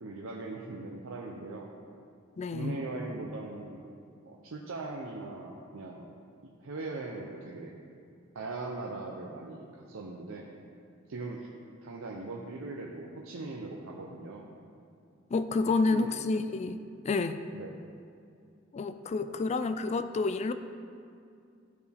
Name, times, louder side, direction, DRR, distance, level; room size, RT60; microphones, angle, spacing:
voice 1, 0.0-1.7 2.5-3.8 4.2-6.1 6.4-7.7 8.3-10.5 11.1-11.5 11.8-14.5 15.9-16.1 17.5-17.8, right 2 dB, 85° right, -2 dB, 0.6 m, -40 dB
voice 2, 2.4-2.8 15.3-16.8 17.0-17.4 18.7-20.5, left 3 dB, 35° left, 10 dB, 0.3 m, -29 dB
12.5 x 4.7 x 3.4 m, 2.4 s
head